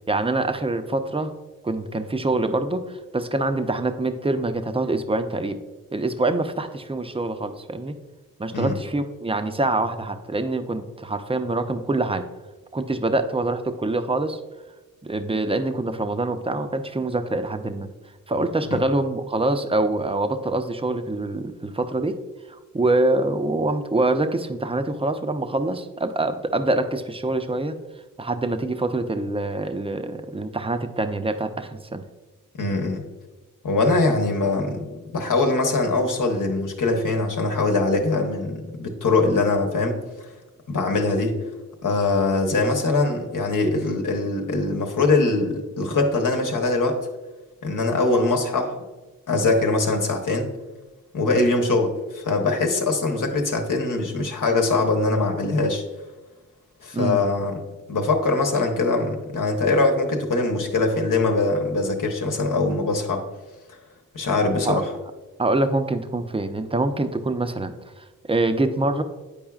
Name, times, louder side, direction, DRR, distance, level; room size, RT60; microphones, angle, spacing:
voice 1, 0.1-1.3 1.6-5.6 5.9-7.9 8.4-12.3 12.7-14.4 15.0-17.9 18.3-22.2 22.7-27.7 28.2-32.0 56.9-57.2 64.7-64.8 65.4-69.0, right 2 dB, 15° right, 8 dB, 0.6 m, -25 dB
voice 2, 32.5-33.0 33.6-40.0 40.7-41.4 41.8-47.0 47.6-48.7 49.3-50.5 51.1-55.8 56.8-57.6 57.9-63.2 64.1-64.9, left 3 dB, 60° left, 3 dB, 1.1 m, -22 dB
8.7 x 4.8 x 2.4 m, 1.2 s
cardioid pair, 45°, 35 cm